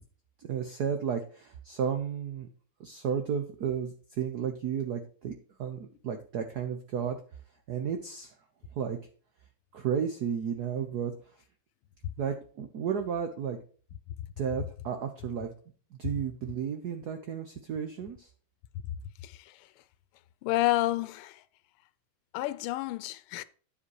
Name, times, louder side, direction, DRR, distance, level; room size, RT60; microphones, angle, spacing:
voice 1, 0.4-2.5 2.8-7.2 7.7-8.3 8.7-9.0 9.7-11.1 12.2-13.6 14.4-15.5 15.9-18.3, right 7 dB, 60° right, 1.1 m, -33 dB
voice 2, 19.2-19.8 20.4-21.4 22.3-23.4, left 17 dB, 80° left, 1.5 m, -30 dB
10.0 x 5.1 x 4.7 m
omnidirectional pair, 2.4 m